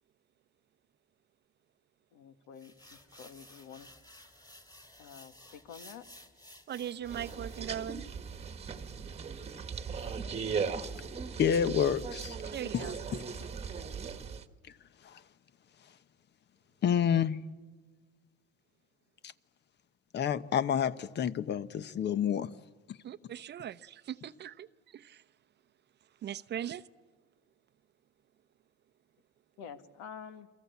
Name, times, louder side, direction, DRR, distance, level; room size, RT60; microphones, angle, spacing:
voice 1, 2.1-3.9 5.0-6.1 12.8-12.9 13.4-13.5 29.6-30.5, left 7 dB, 75° left, 1.9 m, -49 dB
sound 1, 2.6-7.7, left 1 dB, 10° left, 3.0 m, -55 dB
voice 2, 6.7-8.1 12.5-12.9 23.0-25.2 26.2-26.8, right 10 dB, 35° right, 0.8 m, -40 dB
sound 2, 7.0-14.4, right 6 dB, 20° right, 1.4 m, -38 dB
voice 3, 11.4-12.4 12.7-12.8 15.0-15.2 16.8-17.4 20.1-22.5 22.9-23.0, left 8 dB, 35° left, 1.0 m, -28 dB
29.5 x 23.0 x 8.3 m
cardioid pair, 130°, 29 cm